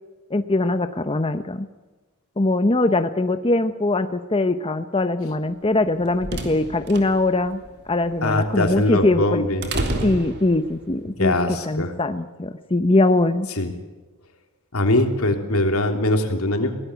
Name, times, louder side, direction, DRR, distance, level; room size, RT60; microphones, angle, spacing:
voice 1, 0.3-1.7 2.4-9.4 10.0-13.5, left 2 dB, 25° left, 9 dB, 0.8 m, -22 dB
sound 1, 5.7-11.0, right 1 dB, 50° right, 3.4 m, -31 dB
voice 2, 8.2-9.7 11.2-11.9 13.6-13.7 14.7-16.8, left 1 dB, 85° left, 5 dB, 3.3 m, -21 dB
23.5 x 18.0 x 8.1 m, 1.2 s
head